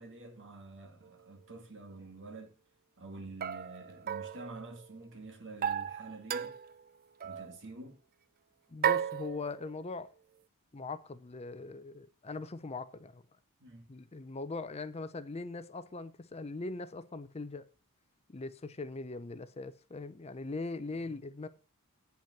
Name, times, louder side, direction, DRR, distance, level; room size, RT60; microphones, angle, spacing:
voice 1, 0.0-2.5 3.0-6.6 7.2-8.0 13.6-13.9 20.9-21.1, right 2 dB, 55° right, 2.2 m, -48 dB
sound 1, 1.0-1.1 3.4-5.0 5.6-6.8 7.2-7.6 8.8-9.9, right 9 dB, 40° right, 0.4 m, -35 dB
voice 2, 8.7-10.1 10.7-13.2 13.9-17.7 18.3-21.5, left 3 dB, 30° left, 0.6 m, -41 dB
9.0 x 5.7 x 5.8 m
head